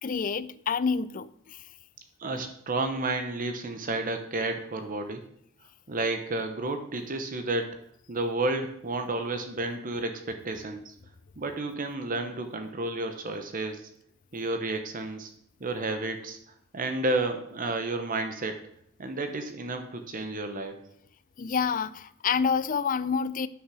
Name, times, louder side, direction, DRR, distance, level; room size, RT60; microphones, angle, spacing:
voice 1, 0.0-1.6 21.4-23.5, left 6 dB, 40° left, 16 dB, 0.5 m, -28 dB
voice 2, 2.2-5.2 5.9-7.7 8.1-10.9 11.4-13.9 14.3-15.3 15.6-16.4 16.7-18.6 19.0-20.8, right 2 dB, 40° right, 6 dB, 1.0 m, -31 dB
9.9 x 6.3 x 6.3 m, 0.70 s
head